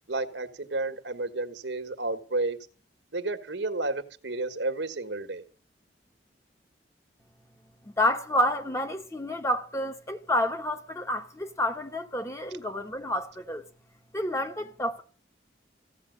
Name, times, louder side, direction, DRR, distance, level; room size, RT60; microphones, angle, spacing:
voice 1, 0.1-2.6 3.1-5.4, right 2 dB, 75° right, 1.5 m, -31 dB
voice 2, 8.0-13.7 14.1-15.0, left 1 dB, 15° left, 1.2 m, -29 dB
15.5 x 7.3 x 9.3 m
head